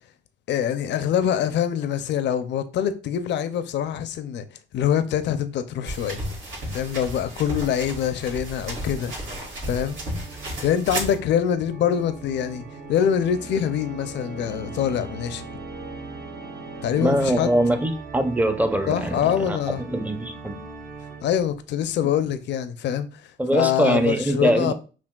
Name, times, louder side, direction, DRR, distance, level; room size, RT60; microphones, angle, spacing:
voice 1, 0.5-4.4 4.7-6.2 6.7-9.1 9.6-10.0 10.6-12.6 12.9-15.4 16.8-17.5 18.9-19.8 21.2-23.2 23.5-24.7, left 9 dB, 65° left, 0.4 m, -24 dB
sound 1, 5.8-11.2, right 1 dB, 85° right, 1.7 m, -33 dB
Organ, 9.7-21.6, right 3 dB, 50° right, 0.8 m, -39 dB
voice 2, 17.0-19.2 19.5-19.6 19.9-20.6 23.4-24.7, right 1 dB, 10° right, 0.5 m, -22 dB
5.7 x 2.3 x 2.3 m
cardioid pair, 90°, 20 cm